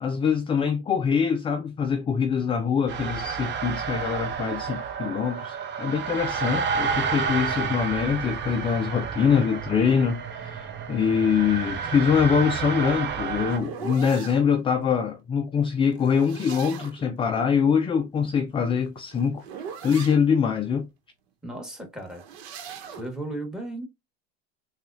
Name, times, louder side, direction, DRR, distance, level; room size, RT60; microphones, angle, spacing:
voice 1, 0.0-19.4 19.8-20.9, left 6 dB, 15° left, 0.4 m, -24 dB
sound 1, 2.9-13.6, right 6 dB, 35° right, 0.8 m, -30 dB
sound 2, 12.6-14.4 15.9-17.1 18.5-20.2 22.0-23.1, right 7 dB, 70° right, 1.1 m, -40 dB
voice 2, 21.4-22.2 22.9-23.9, right 1 dB, ahead, 1.5 m, -35 dB
4.0 x 2.3 x 2.5 m
supercardioid pair, 105°, 32 cm